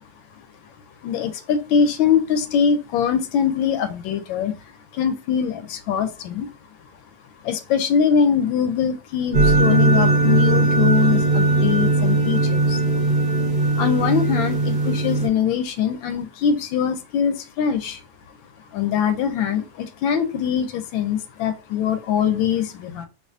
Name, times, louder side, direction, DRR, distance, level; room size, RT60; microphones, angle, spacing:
voice 1, 1.0-4.5 4.9-6.5 7.4-12.8 13.8-18.0 18.7-23.1, left 7 dB, 85° left, 10 dB, 1.3 m, -22 dB
sound 1, 9.3-15.3, right 2 dB, 45° right, 0.7 m, -19 dB
4.8 x 2.4 x 2.5 m, 0.31 s
omnidirectional pair, 2.1 m